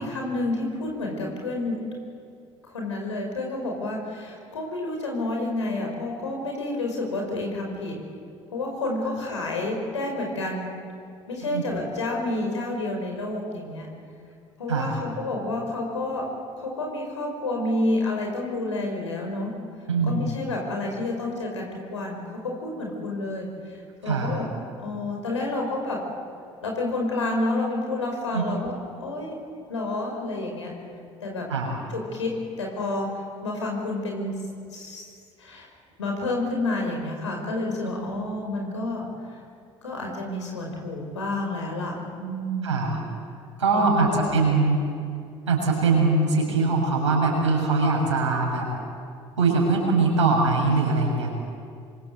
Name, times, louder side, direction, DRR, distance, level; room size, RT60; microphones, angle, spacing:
voice 1, 0.0-1.8 2.6-8.0 8.5-10.7 11.3-13.9 14.6-16.3 16.6-19.5 20.0-26.0 26.6-28.7 29.0-29.4 29.7-30.7 31.2-31.5 31.9-33.1 33.4-34.4 34.7-35.1 35.4-35.7 36.0-39.4 39.8-42.9 43.7-44.5, left 2 dB, 85° left, 1 dB, 5.6 m, -29 dB
voice 2, 19.9-20.2 24.0-24.3 28.3-28.5 31.5-31.7 42.6-43.0 43.6-44.8 45.5-48.7 49.4-51.3, right 3 dB, 85° right, -1 dB, 6.8 m, -22 dB
27.0 x 24.5 x 8.1 m, 2.3 s
figure-of-eight pair, 55°, 15 cm